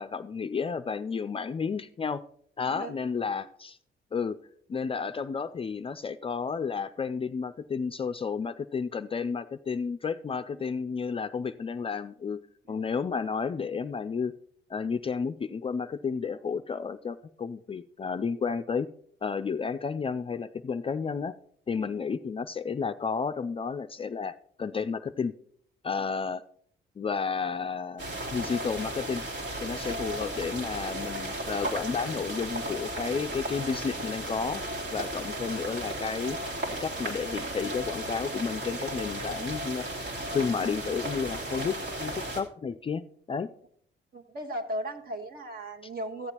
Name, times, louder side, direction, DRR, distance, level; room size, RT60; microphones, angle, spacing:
voice 1, 0.0-2.2 2.6-3.8 4.1-4.4 4.7-12.4 12.7-14.3 14.7-18.9 19.2-21.3 21.7-25.3 25.8-26.4 27.0-29.2 29.6-34.7 34.9-36.4 36.8-39.9 40.3-43.5, left 5 dB, 30° left, 11 dB, 0.4 m, -32 dB
voice 2, 10.3-10.6 12.7-12.9 21.8-22.2 39.5-39.6 44.1-46.3, right 1 dB, 50° right, 4 dB, 1.5 m, -38 dB
sound 1, 28.0-42.4, right 1 dB, 65° right, 2.5 m, -35 dB
14.0 x 8.0 x 2.9 m, 0.63 s
cardioid pair, 90°, 20 cm